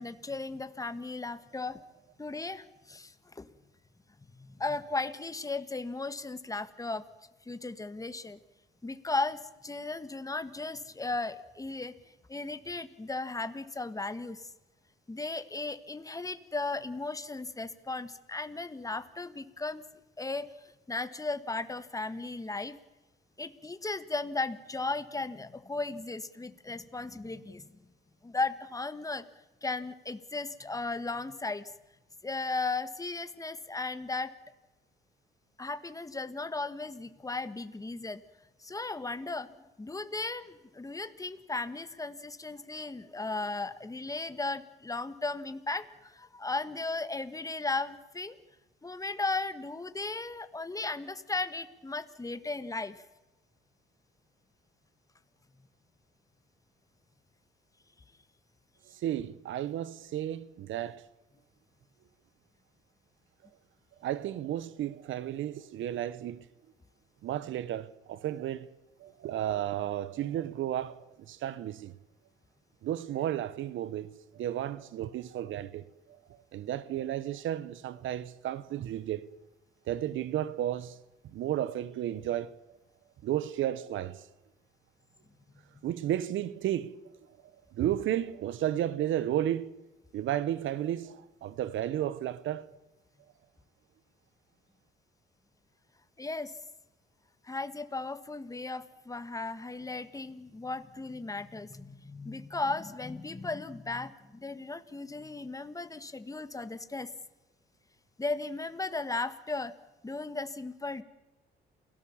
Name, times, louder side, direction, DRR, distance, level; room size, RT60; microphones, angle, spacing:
voice 1, 0.0-1.8 2.2-3.5 4.4-7.0 7.4-8.4 8.8-11.9 12.3-14.5 15.1-19.8 20.2-22.8 23.4-27.7 28.2-29.2 29.6-31.7 32.2-34.3 35.6-38.2 38.6-48.4 48.8-53.0 85.7-85.9 96.2-96.5 97.4-107.1 108.2-109.7 110.0-111.0, left 3 dB, 15° left, 1.5 m, -36 dB
voice 2, 58.9-61.0 64.0-66.5 67.2-68.7 69.0-71.9 72.8-79.3 79.9-81.0 81.2-82.5 83.2-84.3 85.8-87.1 87.7-89.7 90.1-92.7, right 12 dB, 75° right, 1.0 m, -33 dB
28.5 x 17.5 x 7.2 m
cardioid pair, 90°, 20 cm